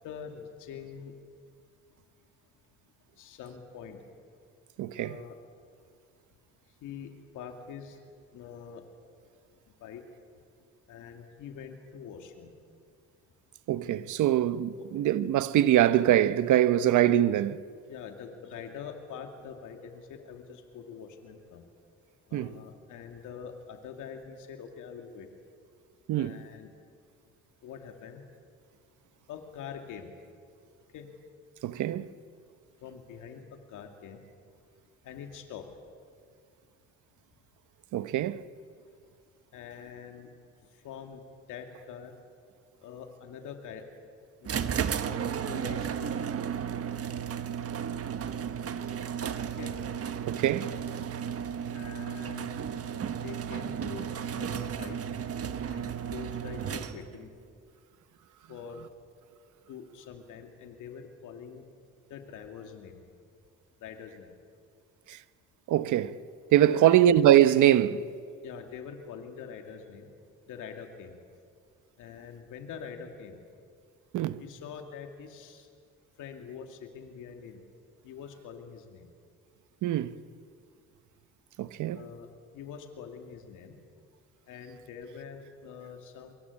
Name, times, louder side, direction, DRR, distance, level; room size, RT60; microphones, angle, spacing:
voice 1, 0.0-1.1 3.2-4.0 5.0-5.4 6.8-8.0 8.3-8.8 9.8-10.0 10.9-12.5 14.8-14.9 17.9-21.6 22.3-25.3 26.1-26.7 27.6-28.2 29.3-30.1 30.9-31.1 32.8-33.4 33.7-34.2 35.0-35.7 39.5-40.3 40.8-41.2 41.5-42.1 42.8-43.8 44.4-46.3 49.6-49.7 51.7-52.6 53.2-55.0 55.7-57.3 58.5-58.8 59.7-61.6 62.1-63.0 63.8-64.3 66.7-67.0 68.4-70.1 70.5-71.2 72.0-73.4 74.4-75.7 76.2-77.6 78.0-79.1 81.9-82.3 82.5-83.8 84.5-86.3, left 7 dB, 85° left, 2.5 m, -44 dB
voice 2, 4.8-5.2 13.7-17.6 22.3-22.5 26.1-26.4 31.6-32.1 37.9-38.4 50.3-50.7 65.1-65.2 65.7-66.2 66.5-68.0 74.1-74.4 79.8-80.2 81.6-82.0, right 12 dB, 75° right, 1.0 m, -23 dB
sound 1, 44.4-57.2, right 8 dB, 50° right, 1.4 m, -34 dB
24.5 x 23.0 x 8.4 m
cardioid pair, 90°, 30 cm